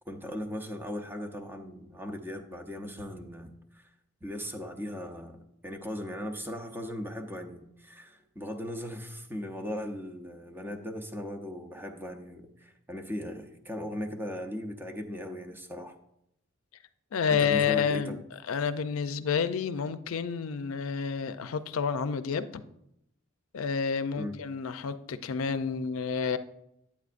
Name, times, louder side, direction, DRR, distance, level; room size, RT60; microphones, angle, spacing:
voice 1, 0.1-3.9 4.2-5.4 5.6-16.0 17.3-18.2 24.2-24.4, equal, 10° right, 5 dB, 0.7 m, -38 dB
voice 2, 17.1-22.6 23.5-26.4, left 6 dB, 85° left, 11 dB, 0.4 m, -29 dB
9.4 x 8.4 x 2.5 m, 0.79 s
head